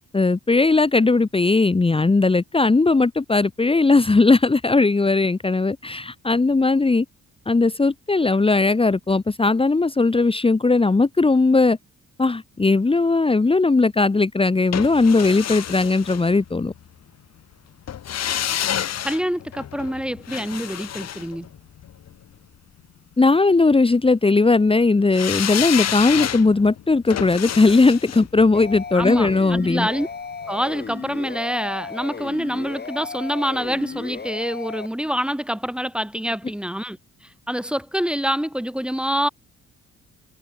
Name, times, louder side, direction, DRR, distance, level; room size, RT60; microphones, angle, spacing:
voice 1, 0.1-7.0 7.5-11.8 12.2-16.7 23.2-29.9, left 3 dB, 20° left, 1.4 m, -18 dB
sound 1, 14.7-16.8 17.9-22.1 25.1-30.1 30.4-30.5, left 10 dB, 60° left, 1.9 m, -29 dB
voice 2, 19.0-21.5 28.9-30.1 30.5-37.0 37.5-39.3, equal, 5° right, 1.8 m, -26 dB
sound 2, 28.5-34.9, left 5 dB, 35° left, 3.6 m, -35 dB
cardioid pair, 90°, 30 cm